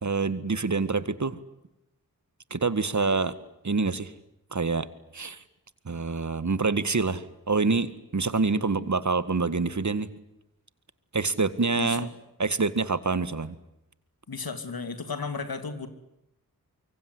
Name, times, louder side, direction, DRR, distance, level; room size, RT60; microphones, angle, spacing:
voice 1, 0.0-1.4 2.5-3.3 3.6-4.1 4.5-4.9 5.1-5.4 5.8-10.1 11.1-12.1 12.4-13.5, right 4 dB, 50° right, 14 dB, 1.8 m, -26 dB
voice 2, 11.8-12.1 14.3-15.9, left 4 dB, 80° left, 10 dB, 2.8 m, -34 dB
25.0 x 23.5 x 9.7 m, 0.84 s
wide cardioid pair, 55°, 35 cm